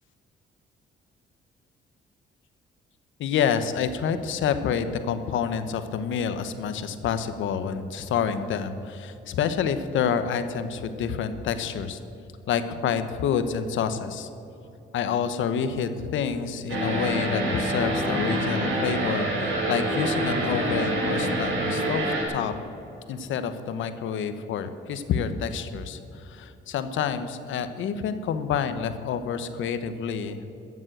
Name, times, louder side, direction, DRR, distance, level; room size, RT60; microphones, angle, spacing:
voice 1, 3.2-12.0 12.5-14.3 14.9-22.5 23.1-30.5, left 7 dB, 80° left, 10 dB, 1.0 m, -28 dB
sound 1, 16.7-22.2, right 1 dB, 80° right, 3.4 m, -26 dB
13.5 x 7.4 x 7.9 m, 2.8 s
cardioid pair, 90°, 20 cm